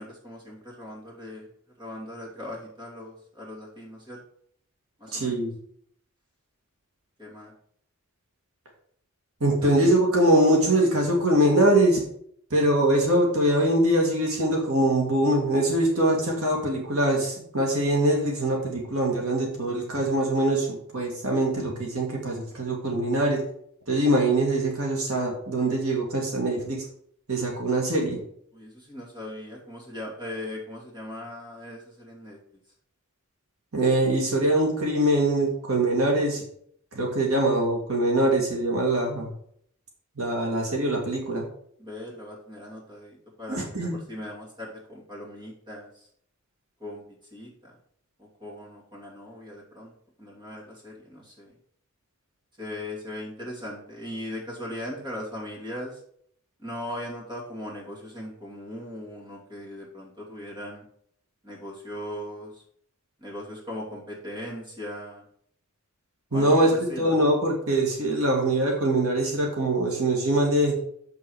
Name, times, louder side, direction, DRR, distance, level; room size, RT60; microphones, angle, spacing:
voice 1, 0.0-1.5 1.8-4.2 5.0-5.4 7.2-7.5 9.6-9.7 28.5-32.4 41.8-46.1 46.8-47.0 47.3-47.7 48.2-49.9 50.2-51.6 52.6-56.0 56.6-60.8 61.4-62.6 63.2-65.2 66.3-67.2, left 1 dB, 20° right, -4 dB, 2.7 m, -39 dB
voice 2, 5.1-5.5 9.4-12.0 12.5-23.4 23.9-26.8 27.3-28.2 33.7-36.4 36.9-39.3 40.2-41.4 43.5-44.0 66.3-66.7 67.0-70.8, right 1 dB, 80° right, 0 dB, 2.2 m, -23 dB
7.2 x 5.9 x 4.8 m, 0.65 s
head